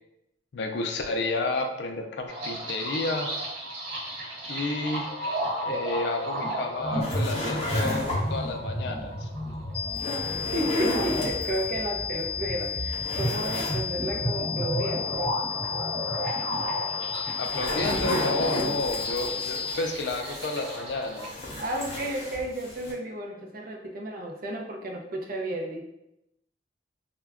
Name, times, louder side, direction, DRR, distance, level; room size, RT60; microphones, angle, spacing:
voice 1, 0.5-3.3 4.5-5.1 5.6-9.3 17.4-21.3, left 2 dB, 65° left, 4 dB, 0.4 m, -31 dB
sound 1, 2.3-21.3, equal, 75° right, 1.0 m, -33 dB
sound 2, 7.0-8.5 9.9-11.6 12.2-12.3 12.7-13.8 14.1-14.2 17.1-20.9 21.2-22.9, left 1 dB, 40° left, 0.7 m, -32 dB
sound 3, 9.7-19.7, left 8 dB, 20° right, 1.0 m, -33 dB
voice 2, 10.5-15.2 21.6-25.8, right 1 dB, 50° right, 1 dB, 0.4 m, -33 dB
2.2 x 2.1 x 3.4 m, 0.85 s
head